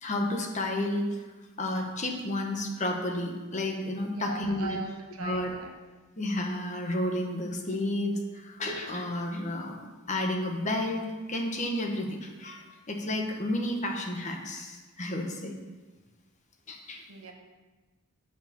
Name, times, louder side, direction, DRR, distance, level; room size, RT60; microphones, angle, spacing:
voice 1, 0.0-1.2 1.6-4.7 5.2-5.5 6.2-9.8 10.1-15.5 16.7-17.0, left 1 dB, 35° left, 2 dB, 1.2 m, -31 dB
voice 2, 4.1-5.7 17.1-17.3, right 3 dB, 90° right, 2 dB, 1.3 m, -40 dB
8.9 x 4.7 x 6.8 m, 1.3 s
head